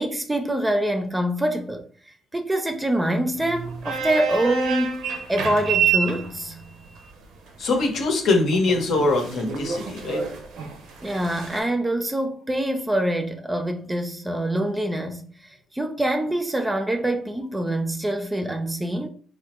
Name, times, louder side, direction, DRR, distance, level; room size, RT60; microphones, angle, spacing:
voice 1, 0.0-1.8 2.3-6.6 11.0-19.1, right 1 dB, 15° right, 0.4 m, -25 dB
sound 1, 3.3-11.6, right 7 dB, 90° right, 0.6 m, -29 dB
voice 2, 7.6-10.2, left 2 dB, 70° left, 0.9 m, -22 dB
3.4 x 2.1 x 3.0 m
cardioid pair, 90°, 0 cm